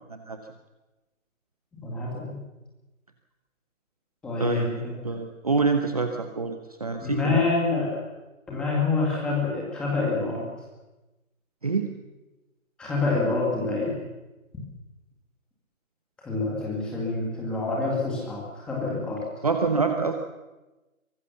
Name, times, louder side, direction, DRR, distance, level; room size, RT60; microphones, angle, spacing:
voice 1, 1.7-2.4 4.2-4.9 7.0-7.9 8.5-10.4 12.8-13.9 16.2-19.2, left 3 dB, ahead, -4 dB, 1.9 m, -27 dB
voice 2, 4.4-7.4 11.6-11.9 19.4-20.1, right 4 dB, 25° right, 5 dB, 1.0 m, -26 dB
23.5 x 18.5 x 7.0 m, 1.1 s
hypercardioid pair, 175°, 42 cm